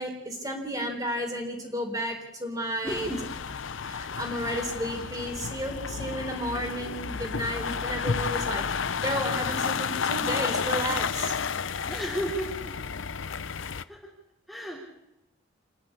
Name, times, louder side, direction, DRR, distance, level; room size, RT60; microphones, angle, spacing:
voice 1, 0.0-3.1 3.8-8.6 9.0-11.3, equal, 20° right, 2 dB, 4.0 m, -32 dB
voice 2, 2.8-3.3 11.8-12.8 13.9-14.1 14.5-14.8, equal, ahead, -4 dB, 3.2 m, -33 dB
sound 1, 2.9-13.8, left 6 dB, 65° left, 0.7 m, -31 dB
28.0 x 10.5 x 9.9 m, 0.87 s
head